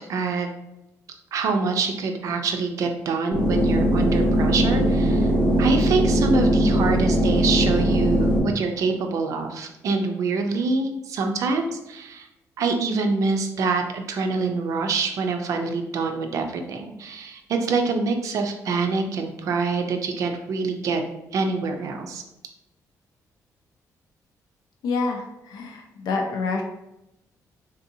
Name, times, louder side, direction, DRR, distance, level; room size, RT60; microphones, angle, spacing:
voice 1, 0.1-0.5 1.3-5.3 5.6-12.3 12.6-21.0 21.3-22.2, right 4 dB, 55° right, 5 dB, 0.5 m, -25 dB
sound 1, 3.3-8.4, equal, 35° left, 0.7 m, -20 dB
voice 2, 24.8-26.6, left 4 dB, 85° left, 3 dB, 0.5 m, -27 dB
3.7 x 2.7 x 2.6 m, 0.89 s
cardioid pair, 175°, 6 cm